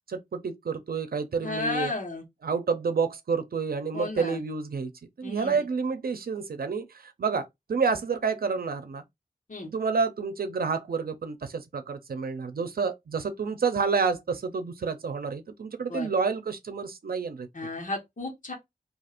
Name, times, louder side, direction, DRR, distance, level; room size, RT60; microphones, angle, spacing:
voice 1, 0.1-1.9 2.4-4.9 5.2-9.0 9.6-17.5, right 5 dB, 90° right, 0.6 m, -29 dB
voice 2, 1.4-2.2 3.9-4.4 5.2-5.6 9.5-9.7 15.9-16.1 17.5-18.5, left 3 dB, 60° left, 1.4 m, -33 dB
2.8 x 2.4 x 4.3 m
wide cardioid pair, 65°, 15 cm